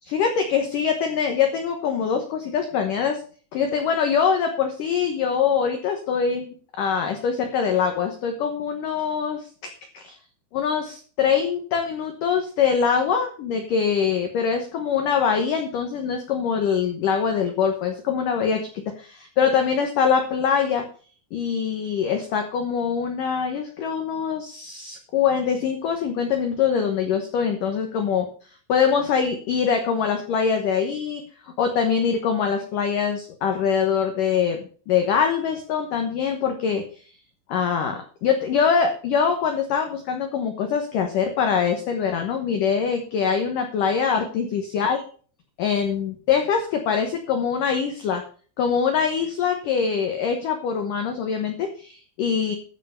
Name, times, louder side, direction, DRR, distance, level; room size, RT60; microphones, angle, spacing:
voice 1, 0.1-3.2 3.5-6.5 6.8-9.5 9.9-10.1 10.5-18.6 19.0-20.8 21.3-28.3 28.7-37.0 37.5-45.0 45.6-48.2 48.6-52.5, left 6 dB, 70° left, 4 dB, 2.0 m, -23 dB
13.0 x 5.7 x 6.7 m, 0.42 s
omnidirectional pair, 5.5 m